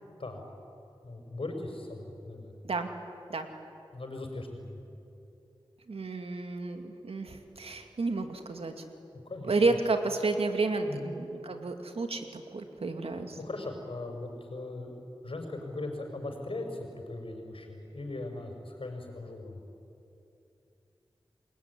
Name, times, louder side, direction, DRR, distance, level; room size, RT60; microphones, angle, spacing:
voice 1, 1.0-2.5 3.9-4.8 9.3-9.7 10.9-11.1 13.1-14.9 15.2-19.6, left 2 dB, 70° left, 4 dB, 5.6 m, -39 dB
voice 2, 5.9-8.8 9.5-13.4, right 3 dB, 85° right, 6 dB, 2.3 m, -31 dB
29.0 x 20.5 x 9.7 m, 2.8 s
cardioid pair, 40°, 10 cm